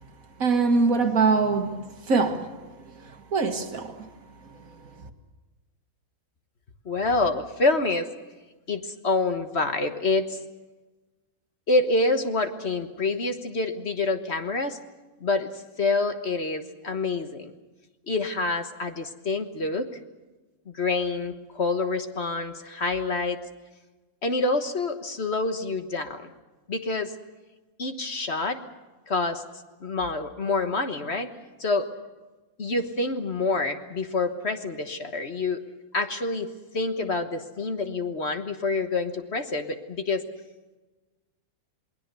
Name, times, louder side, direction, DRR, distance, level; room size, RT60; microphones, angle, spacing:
voice 1, 0.4-1.8 2.1-2.6 3.0-4.1 4.8-5.1, right 4 dB, 65° right, 2.1 m, -23 dB
voice 2, 6.8-8.1 8.7-10.4 11.7-14.8 15.2-15.5 15.8-17.5 18.1-19.9 20.7-23.4 24.2-26.3 26.7-27.1 27.8-28.6 29.1-29.4 29.8-31.3 31.6-31.9 32.6-35.6 35.9-36.5 36.7-40.2, left 3 dB, 45° left, 1.5 m, -27 dB
28.0 x 20.0 x 6.8 m
omnidirectional pair, 1.6 m